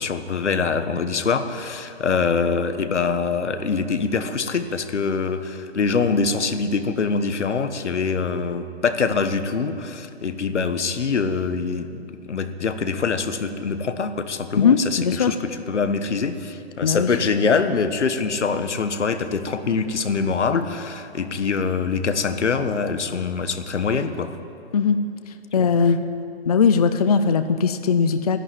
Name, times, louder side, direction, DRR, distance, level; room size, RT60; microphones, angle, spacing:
voice 1, 0.0-24.3 25.6-25.7, left 5 dB, 90° left, 9 dB, 1.3 m, -24 dB
voice 2, 14.6-15.3 16.8-17.1 24.7-25.0 25.5-26.0 26.5-28.4, left 6 dB, 35° left, 9 dB, 0.5 m, -19 dB
13.0 x 11.0 x 9.3 m, 2.5 s
hypercardioid pair, 165°, 34 cm